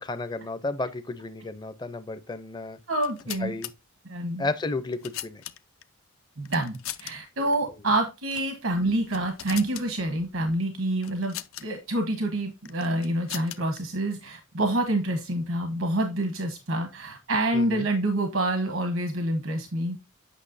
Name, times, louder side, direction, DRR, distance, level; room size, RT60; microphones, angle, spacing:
voice 1, 0.0-2.8 3.4-3.7 4.4-5.4 17.5-17.9, left 3 dB, 20° left, 0.5 m, -32 dB
sound 1, 2.9-3.7 4.6-5.8 6.5-7.1 7.4-7.6 8.3-8.5 8.9-9.9 11.0-11.7 12.7-13.8, left 13 dB, 80° left, 0.5 m, -39 dB
voice 2, 2.9-3.6 4.0-4.5 6.4-11.4 11.6-20.0, right 1 dB, 80° right, 1.1 m, -27 dB
8.3 x 5.9 x 2.6 m
head